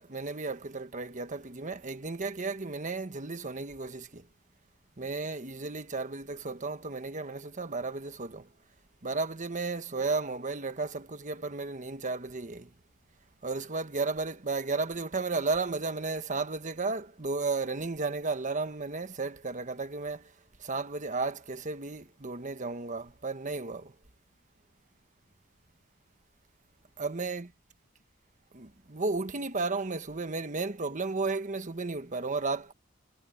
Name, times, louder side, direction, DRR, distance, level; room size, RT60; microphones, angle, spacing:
voice 1, 0.0-4.2 5.0-8.5 9.0-12.7 13.4-20.3 20.6-23.9 27.0-27.5 28.5-32.7, right 3 dB, 40° right, 1.3 m, -33 dB
head